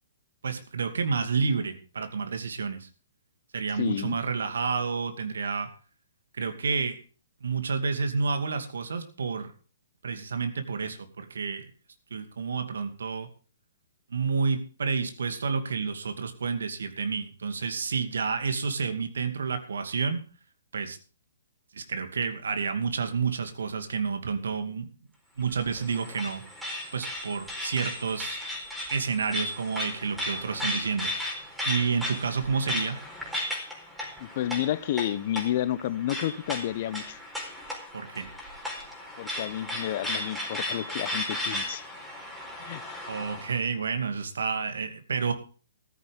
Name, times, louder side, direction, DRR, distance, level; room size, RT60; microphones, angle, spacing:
voice 1, 0.4-2.9 3.5-5.7 6.4-7.0 7.4-9.5 10.0-11.7 12.1-13.3 14.1-20.2 20.7-21.0 21.7-24.9 25.4-26.4 26.9-28.4 28.9-31.1 31.6-33.0 37.9-38.3 43.1-45.3, right 5 dB, 70° right, 2.4 m, -29 dB
voice 2, 3.7-4.2 34.2-37.2 39.2-41.9 42.6-43.0, left 12 dB, 45° left, 1.0 m, -30 dB
sound 1, 25.4-43.6, left 1 dB, 5° right, 4.3 m, -35 dB
14.5 x 13.5 x 3.6 m
figure-of-eight pair, 125°, 0 cm